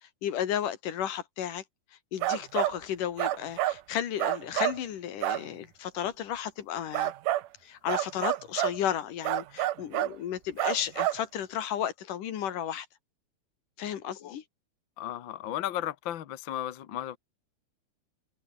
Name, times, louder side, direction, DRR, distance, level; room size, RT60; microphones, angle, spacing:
voice 1, 0.0-1.6 2.1-7.1 7.6-12.9 13.8-14.4, left 10 dB, 80° left, 3.5 m, -33 dB
sound 1, 2.2-2.8 3.2-3.8 4.2-4.8 5.2-5.4 6.9-7.5 7.9-8.8 9.2-10.2 10.6-11.2, right 15 dB, 85° right, 2.5 m, -28 dB
voice 2, 15.0-17.2, left 12 dB, 55° left, 1.4 m, -35 dB
open air
omnidirectional pair, 3.6 m